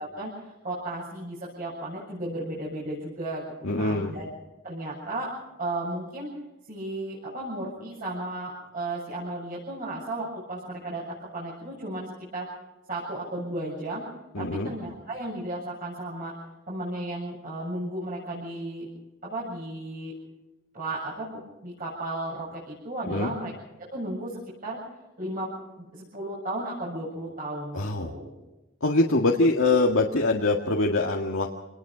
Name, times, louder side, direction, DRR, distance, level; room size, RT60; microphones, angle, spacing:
voice 1, 0.0-3.4 3.8-4.2 4.6-5.3 5.6-6.3 6.7-12.5 12.9-14.0 14.4-16.3 16.7-18.9 19.2-20.1 20.7-23.5 23.9-24.8 25.2-25.5 25.8-28.3, right 1 dB, 45° right, -5 dB, 7.6 m, -34 dB
voice 2, 3.6-4.1 14.3-14.7 23.1-23.3 27.7-28.1 28.8-31.5, left 2 dB, 70° left, 0 dB, 1.9 m, -23 dB
27.5 x 20.0 x 5.1 m, 1.0 s
head